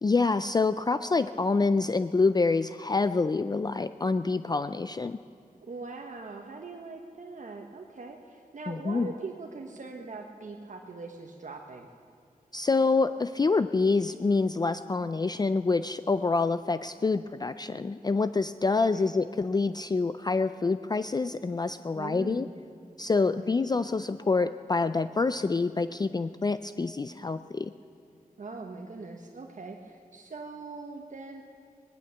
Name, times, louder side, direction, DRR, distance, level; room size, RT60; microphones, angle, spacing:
voice 1, 0.0-5.2 8.7-9.1 12.5-22.5 23.0-27.7, left 3 dB, 30° left, 12 dB, 0.4 m, -26 dB
voice 2, 5.7-11.9 18.9-19.1 21.9-22.5 23.4-23.5 28.4-31.4, right 3 dB, 60° right, 1 dB, 1.1 m, -41 dB
19.0 x 10.5 x 6.9 m, 2.4 s
wide cardioid pair, 70°, 15 cm